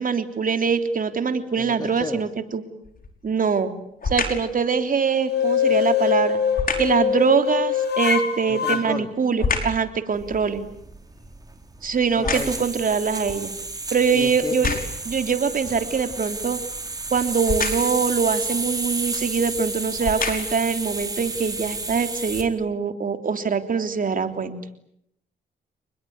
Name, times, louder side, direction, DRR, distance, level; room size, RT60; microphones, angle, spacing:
voice 1, 0.0-2.6 3.2-3.7 4.0-6.4 6.8-10.7 11.8-13.5 13.9-14.7 15.0-16.6 17.1-24.6, right 5 dB, 50° right, 8 dB, 3.4 m, -23 dB
voice 2, 1.6-2.2 8.5-9.1 12.2-12.6 14.1-14.8, left 2 dB, 20° left, 8 dB, 2.6 m, -32 dB
sound 1, 2.8-3.2 4.0-4.5 6.5-7.0 8.4-9.9 10.3-12.8 13.5-13.6 14.4-15.1 17.4-18.0 19.1-19.2 19.9-20.7 21.3-21.4, left 4 dB, 55° left, 5.5 m, -28 dB
sound 2, 5.2-8.8, left 8 dB, 70° left, 3.7 m, -23 dB
sound 3, 10.1-22.5, right 2 dB, 20° right, 4.3 m, -32 dB
29.5 x 20.5 x 9.6 m, 0.75 s
cardioid pair, 80°, 18 cm